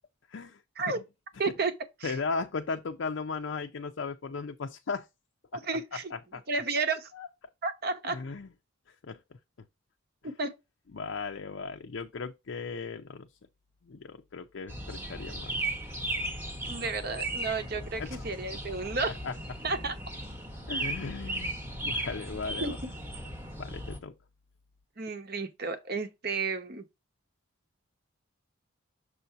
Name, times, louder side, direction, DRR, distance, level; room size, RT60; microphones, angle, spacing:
voice 1, 0.3-0.6 0.9-1.0 2.0-5.1 5.5-5.6 6.1-6.4 7.2-7.3 8.1-8.5 9.0-9.2 10.9-13.3 13.8-15.6 18.0-18.2 19.0-19.3 20.7-21.6 21.8-22.8 23.6-24.1, left 4 dB, 65° left, 0.5 m, -36 dB
voice 2, 1.4-1.7 2.0-2.2 5.5-6.1 6.5-7.1 7.6-8.2 10.2-10.6 16.7-19.1 19.6-20.0 22.6-22.7 25.0-26.8, right 4 dB, 45° right, 1.0 m, -32 dB
sound 1, 14.7-24.0, right 1 dB, 10° right, 1.0 m, -36 dB
6.8 x 2.7 x 5.6 m
head